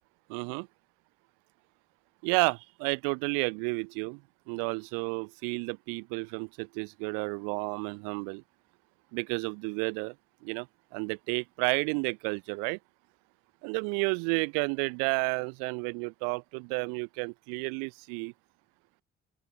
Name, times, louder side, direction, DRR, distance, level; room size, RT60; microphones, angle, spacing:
voice 1, 0.3-0.7 2.2-4.2 4.5-8.4 9.1-10.1 10.4-10.7 10.9-12.8 13.6-18.3, right 40 dB or more, 70° right, 0.6 m, -31 dB
open air
figure-of-eight pair, 40°, 35 cm